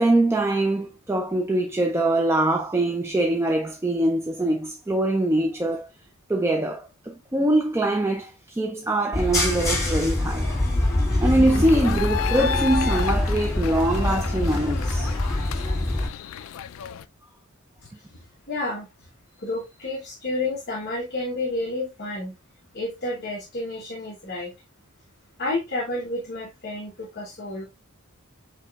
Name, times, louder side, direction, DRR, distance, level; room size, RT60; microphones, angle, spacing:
voice 1, 0.0-5.9 6.3-10.5 11.2-15.2, right 1 dB, 10° right, 0.3 m, -23 dB
sound 1, 9.1-16.1, left 1 dB, 15° left, 2.3 m, -24 dB
sound 2, 11.5-17.1, left 7 dB, 65° left, 0.3 m, -33 dB
voice 2, 17.8-18.8 19.4-22.3 22.7-24.5 25.4-27.7, left 2 dB, 45° left, 1.1 m, -30 dB
7.2 x 2.9 x 2.3 m
head